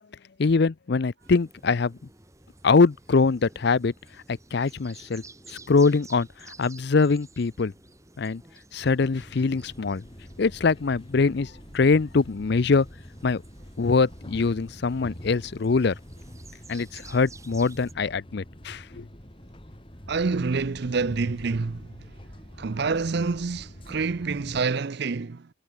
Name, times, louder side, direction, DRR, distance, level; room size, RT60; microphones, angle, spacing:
voice 1, 0.4-1.9 2.6-3.9 4.3-5.2 5.5-6.3 6.6-7.7 8.2-8.4 8.7-10.0 10.4-12.9 13.2-13.4 13.8-15.9 16.7-19.0, left 4 dB, 55° left, 0.5 m, -23 dB
sound 1, 1.2-17.9, right 2 dB, 15° right, 3.3 m, -52 dB
sound 2, 8.8-24.6, equal, 25° left, 3.8 m, -45 dB
voice 2, 20.1-21.9 22.6-25.5, right 4 dB, 50° right, 0.5 m, -27 dB
head